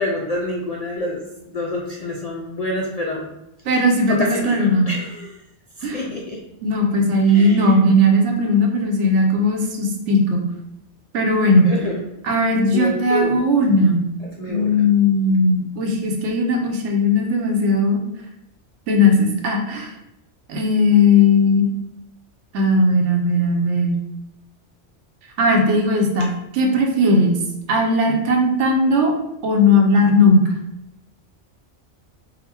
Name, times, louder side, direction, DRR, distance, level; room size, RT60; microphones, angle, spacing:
voice 1, 0.0-3.3 3.7-3.8 4.1-5.3 5.8-6.4 7.3-7.6 11.7-12.0 12.7-13.4 14.3-14.7, left 1 dB, 70° left, -2 dB, 0.3 m, -27 dB
voice 2, 3.6-4.9 5.8-6.1 6.6-10.4 11.1-11.7 12.2-14.0 14.5-18.0 18.9-19.9 20.5-21.7 22.5-24.0 25.4-27.4 27.7-29.1 29.4-30.6, left 1 dB, 80° right, 2 dB, 1.0 m, -17 dB
4.0 x 2.1 x 4.2 m, 0.86 s
omnidirectional pair, 1.2 m